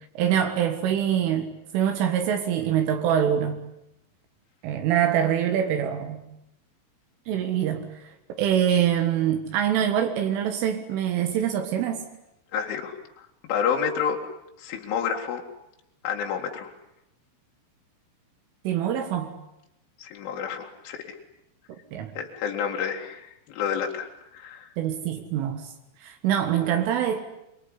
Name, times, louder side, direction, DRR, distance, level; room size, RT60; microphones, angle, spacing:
voice 1, 0.2-3.6 4.6-6.2 7.3-8.1 8.4-12.1 18.7-19.3 21.9-22.1 24.8-25.7 26.0-27.2, right 9 dB, 85° right, 5 dB, 4.2 m, -24 dB
voice 2, 12.5-13.0 13.5-14.2 14.6-15.4 16.0-16.7 20.0-21.2 22.2-24.7, left 7 dB, 80° left, 0 dB, 4.6 m, -29 dB
25.5 x 23.5 x 9.9 m, 0.86 s
omnidirectional pair, 5.6 m